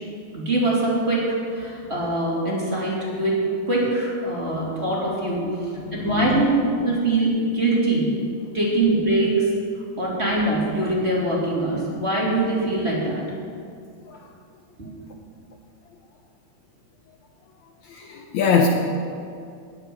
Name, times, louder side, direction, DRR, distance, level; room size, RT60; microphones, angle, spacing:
voice 1, 0.3-1.2 1.5-3.4 3.6-6.5 6.8-8.1 8.5-9.5 10.0-13.2, right 2 dB, 15° right, -6 dB, 3.2 m, -23 dB
voice 2, 5.4-6.5 14.1-14.3 17.8-18.7, left 6 dB, 90° left, 2 dB, 1.6 m, -25 dB
19.5 x 7.8 x 7.9 m, 2.4 s
omnidirectional pair, 4.5 m